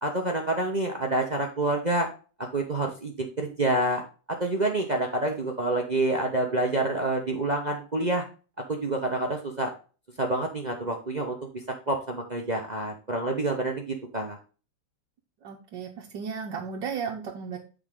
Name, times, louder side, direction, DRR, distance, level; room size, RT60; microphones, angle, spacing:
voice 1, 0.0-2.1 2.4-4.0 4.3-8.2 8.7-9.7 10.2-14.4, right 2 dB, 30° right, 2 dB, 0.7 m, -28 dB
voice 2, 15.4-17.6, right 6 dB, 60° right, -1 dB, 1.5 m, -34 dB
8.6 x 4.9 x 3.8 m, 0.35 s
omnidirectional pair, 2.3 m